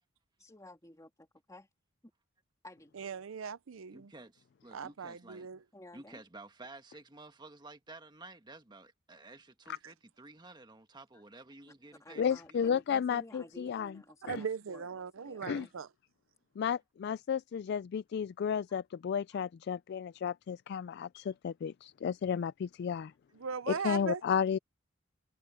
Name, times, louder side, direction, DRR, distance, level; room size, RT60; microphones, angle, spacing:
voice 1, 0.4-1.7 2.6-3.0 5.7-6.2 11.1-11.2 11.6-11.7 12.0-15.7 18.7-18.8 19.3-19.4, left 1 dB, 15° left, 2.7 m, -54 dB
voice 2, 2.9-4.1 4.7-5.6 9.8-9.9 14.2-15.9 23.3-24.2, right 6 dB, 85° right, 0.6 m, -39 dB
voice 3, 3.9-5.5 5.9-12.8, right 2 dB, 20° right, 1.3 m, -52 dB
voice 4, 12.2-13.9 14.3-14.4 15.4-15.7 16.6-23.1 23.7-24.6, left 7 dB, 55° left, 0.3 m, -33 dB
head